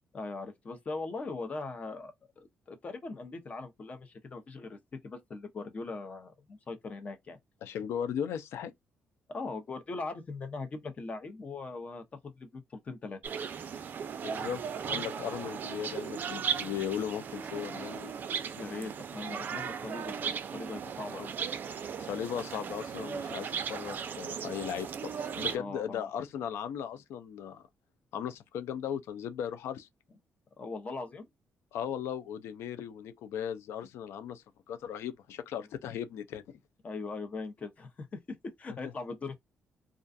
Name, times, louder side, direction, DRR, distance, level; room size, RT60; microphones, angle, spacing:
voice 1, 0.1-4.8 5.0-7.4 9.3-13.2 18.6-20.2 20.5-21.3 25.5-26.1 30.6-31.2 36.8-38.2 38.6-39.3, left 3 dB, 35° left, 0.6 m, -40 dB
voice 2, 7.6-8.7 14.2-18.1 22.0-27.7 28.1-29.9 31.7-36.4, left 9 dB, 85° left, 0.4 m, -37 dB
sound 1, 13.2-25.6, right 7 dB, 45° right, 0.4 m, -37 dB
2.4 x 2.2 x 2.5 m
cardioid pair, 125°, 4 cm